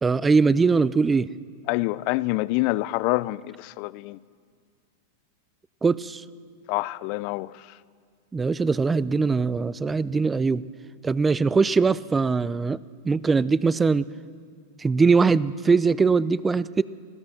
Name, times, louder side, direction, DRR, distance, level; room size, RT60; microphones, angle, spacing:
voice 1, 0.0-1.3 5.8-6.2 8.3-10.6 11.0-12.8 13.1-14.1 14.8-16.8, right 4 dB, 15° right, 0.5 m, -21 dB
voice 2, 1.7-4.2 6.7-7.7, left 20 dB, 50° left, 0.5 m, -26 dB
26.0 x 16.0 x 6.7 m
hypercardioid pair, 115°, 0 cm